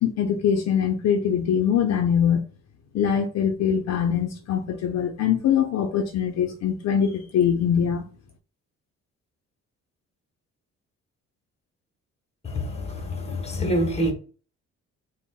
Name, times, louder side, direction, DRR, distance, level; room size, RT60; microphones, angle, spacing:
voice 1, 0.0-2.4 2.9-8.0, left 8 dB, 60° left, 0.5 m, -23 dB
voice 2, 12.4-14.1, equal, 20° left, 1.0 m, -26 dB
3.9 x 2.1 x 2.2 m
cardioid pair, 90°, 30 cm